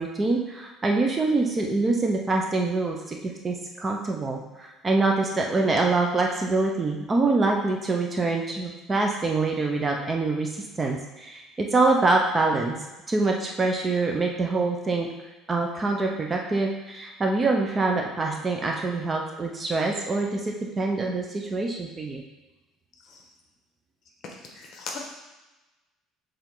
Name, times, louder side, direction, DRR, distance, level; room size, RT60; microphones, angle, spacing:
voice 1, 0.0-3.2 3.4-12.7 13.1-15.1 15.5-22.2, right 3 dB, 20° right, 1 dB, 0.7 m, -25 dB
voice 2, 24.2-25.0, left 4 dB, 50° left, 0 dB, 1.3 m, -38 dB
7.2 x 3.3 x 3.9 m, 1.1 s
cardioid pair, 135°, 0 cm